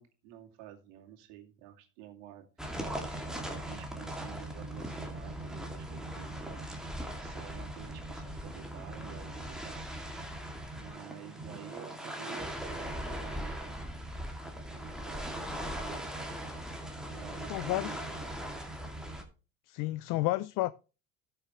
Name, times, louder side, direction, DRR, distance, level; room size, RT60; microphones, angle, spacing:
voice 1, 0.0-6.7 7.1-9.9 10.7-13.9 14.6-16.1 17.1-18.4, right 12 dB, 90° right, 2.5 m, -51 dB
sound 1, 2.6-19.2, right 1 dB, ahead, 2.4 m, -39 dB
voice 2, 17.5-18.0 19.7-20.7, left 18 dB, 60° left, 0.5 m, -31 dB
14.0 x 6.7 x 3.1 m
cardioid pair, 120°, 35 cm